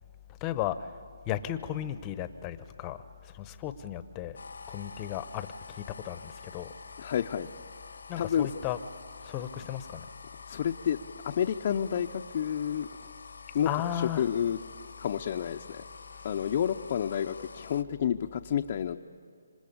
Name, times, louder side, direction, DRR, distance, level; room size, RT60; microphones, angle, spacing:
voice 1, 0.4-0.9 1.3-4.4 4.7-6.7 8.1-8.8 9.2-10.0 13.7-14.2, left 11 dB, 20° left, 12 dB, 0.9 m, -35 dB
sound 1, 4.3-17.8, left 4 dB, 80° left, 1.1 m, -48 dB
voice 2, 7.0-7.5 8.2-8.5 10.5-11.0 11.2-12.9 13.5-14.6 15.0-15.8 16.2-19.0, left 9 dB, 35° left, 2 dB, 0.7 m, -30 dB
27.0 x 25.5 x 8.6 m, 2.1 s
hypercardioid pair, 165°, 0 cm